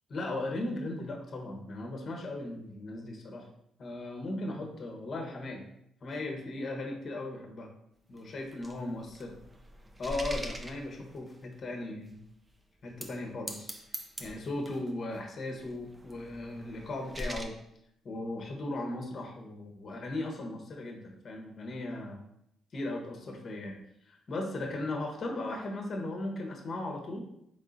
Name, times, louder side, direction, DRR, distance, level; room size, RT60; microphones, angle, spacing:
voice 1, 0.1-3.5 3.8-5.6 6.0-7.7 8.1-9.3 10.0-12.1 12.8-13.7 14.2-17.5 18.0-22.2 22.7-23.8 24.1-27.3, left 2 dB, 50° left, 1 dB, 1.0 m, -37 dB
sound 1, 8.2-11.5 12.1-12.2 12.8-13.2 13.5-14.9 15.6-17.4, right 1 dB, 20° right, 0.6 m, -43 dB
3.8 x 3.6 x 3.9 m, 0.76 s
cardioid pair, 90°, 0 cm